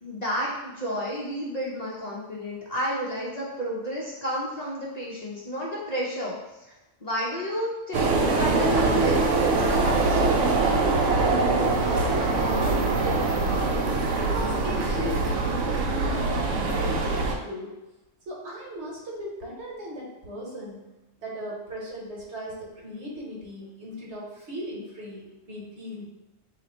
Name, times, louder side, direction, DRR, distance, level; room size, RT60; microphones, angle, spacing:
voice 1, 0.0-6.4 7.0-10.8, equal, 45° left, -5 dB, 0.6 m, -31 dB
sound 1, 7.9-17.4, right 3 dB, 85° right, 0.9 m, -23 dB
voice 2, 11.6-17.7 18.3-20.8 21.2-26.1, equal, 70° right, -3 dB, 1.2 m, -37 dB
2.9 x 2.5 x 4.1 m, 1.0 s
omnidirectional pair, 1.2 m